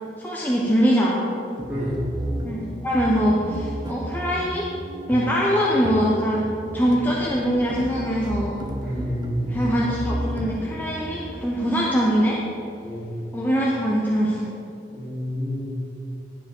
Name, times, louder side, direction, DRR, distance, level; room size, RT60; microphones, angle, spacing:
voice 1, 0.2-1.3 2.4-4.7 5.1-8.6 9.5-12.4 13.3-14.4, equal, 10° left, -4 dB, 0.8 m, -22 dB
sound 1, 1.6-14.4, right 1 dB, 25° right, 0.6 m, -33 dB
voice 2, 1.7-2.0 8.8-9.6 12.8-13.2 14.9-15.6, equal, 10° right, -9 dB, 2.2 m, -30 dB
11.0 x 7.0 x 4.4 m, 2.7 s
head